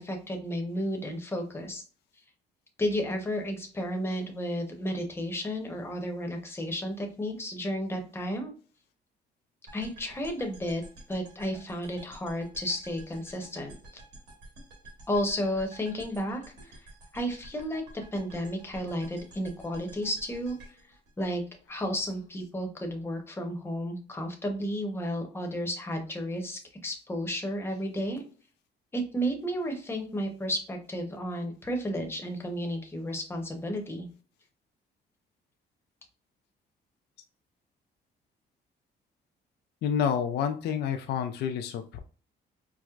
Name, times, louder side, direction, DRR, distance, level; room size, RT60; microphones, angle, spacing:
voice 1, 0.0-1.8 2.8-8.5 9.7-10.8 11.1-13.7 15.1-16.8 17.1-20.6 21.2-21.4 21.7-28.2 28.9-34.1, equal, 15° left, 3 dB, 0.8 m, -32 dB
sound 1, 9.7-21.8, right 1 dB, 80° right, 1.4 m, -51 dB
voice 2, 39.8-42.0, left 8 dB, 70° left, 7 dB, 0.4 m, -29 dB
4.5 x 2.0 x 2.4 m, 0.39 s
cardioid pair, 130°, 18 cm